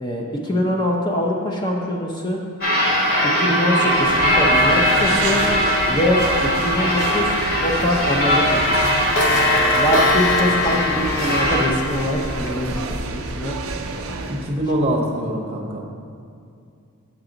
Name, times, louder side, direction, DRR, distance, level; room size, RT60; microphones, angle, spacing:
voice 1, 0.0-2.4 3.2-5.4 5.9-6.2 6.5-8.7 9.7-12.8 13.4-13.5 15.0-15.1, left 1 dB, 20° left, 0 dB, 0.6 m, -23 dB
sound 1, 2.6-11.7, equal, 40° left, 1.3 m, -20 dB
sound 2, 3.8-14.5, right 3 dB, 65° right, 0.5 m, -29 dB
Clock, 7.2-7.3 7.7-7.8 8.1-8.2 8.5-12.6, left 3 dB, 60° left, 0.6 m, -24 dB
voice 2, 14.3-15.8, right 1 dB, 30° right, 0 dB, 0.7 m, -23 dB
7.5 x 5.9 x 3.9 m, 2.4 s
head